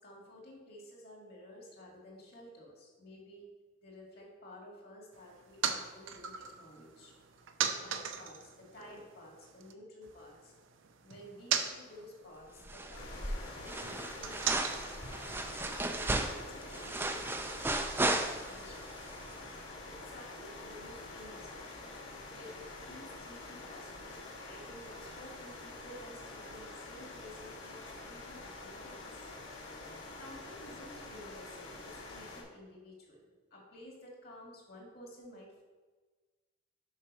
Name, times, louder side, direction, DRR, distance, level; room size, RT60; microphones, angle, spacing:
voice 1, 0.0-3.5 3.8-7.2 7.6-10.5 11.0-15.0 15.6-19.0 19.9-21.7 22.3-24.1 24.4-29.1 29.9-35.6, left 1 dB, 50° left, -1 dB, 2.2 m, -53 dB
sound 1, 5.1-9.7 10.0-16.2, right 7 dB, 80° right, 0.6 m, -40 dB
sound 2, 12.7-13.2 13.4-18.8 19.1-19.2, right 2 dB, 10° right, 0.4 m, -35 dB
sound 3, 12.9-32.4, left 2 dB, 80° left, 2.4 m, -46 dB
6.4 x 5.7 x 5.4 m, 1.3 s
head